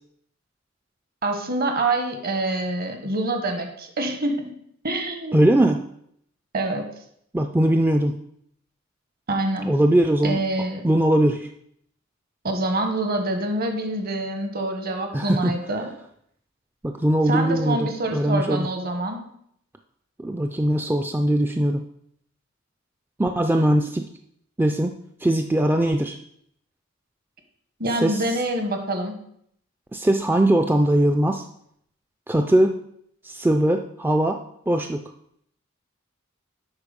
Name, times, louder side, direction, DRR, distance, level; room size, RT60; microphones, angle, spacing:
voice 1, 1.2-4.4 4.8-5.5 6.5-6.9 9.3-9.7 10.2-10.8 12.4-15.9 17.3-19.2 27.8-29.1, right 2 dB, 50° right, 6 dB, 1.3 m, -26 dB
voice 2, 5.3-5.9 7.3-8.2 9.6-10.4 10.8-11.5 15.1-15.5 16.8-18.7 20.2-21.8 23.2-24.1 24.6-26.2 28.0-28.2 29.9-31.4 32.3-32.8 33.2-34.4 34.7-35.0, right 1 dB, 10° right, 5 dB, 0.4 m, -20 dB
8.1 x 5.4 x 5.2 m, 0.70 s
head